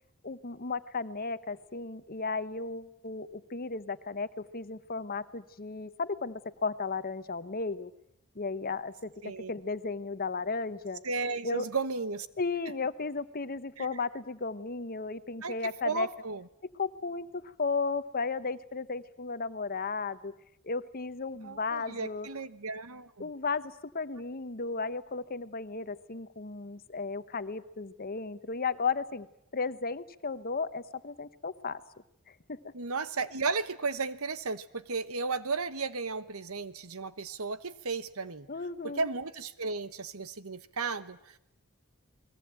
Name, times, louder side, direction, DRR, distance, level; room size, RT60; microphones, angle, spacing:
voice 1, 0.2-7.9 8.3-11.0 11.4-11.7 12.4-16.1 16.8-20.3 20.6-22.3 23.2-29.3 29.5-31.8 32.5-32.7 38.5-39.1, left 4 dB, 45° left, 14 dB, 1.0 m, -34 dB
voice 2, 9.2-9.5 11.0-12.3 13.8-13.9 15.4-15.6 15.8-16.4 21.4-23.3 32.7-38.5 38.8-41.4, right 4 dB, 80° right, 14 dB, 1.3 m, -34 dB
29.5 x 20.5 x 9.0 m, 0.77 s
head